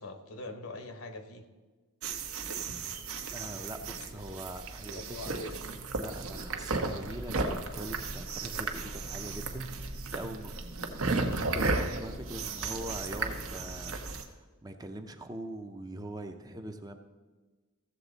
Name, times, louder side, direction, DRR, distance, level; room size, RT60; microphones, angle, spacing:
voice 1, 0.0-1.4 3.8-3.9 4.9-5.6 12.4-12.7, left 2 dB, 70° left, 8 dB, 1.0 m, -43 dB
sound 1, 2.0-14.3, right 3 dB, 65° right, 0.9 m, -35 dB
voice 2, 3.3-5.2 5.9-9.7 10.1-10.5 11.5-17.0, right 1 dB, 15° right, 5 dB, 0.6 m, -42 dB
14.5 x 7.1 x 4.0 m, 1.3 s
head